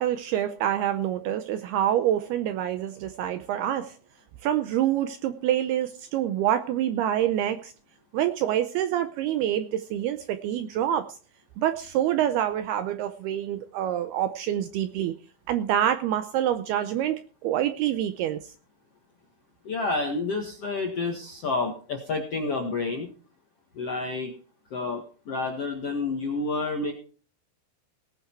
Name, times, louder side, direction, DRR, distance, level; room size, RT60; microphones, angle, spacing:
voice 1, 0.0-4.0 4.4-7.7 8.1-11.1 11.6-15.1 15.5-18.5, right 11 dB, 80° right, 10 dB, 2.3 m, -26 dB
voice 2, 19.6-23.1 23.7-24.3 24.7-26.9, left 3 dB, 60° left, 2 dB, 1.6 m, -29 dB
18.0 x 9.4 x 4.5 m, 0.40 s
omnidirectional pair, 5.3 m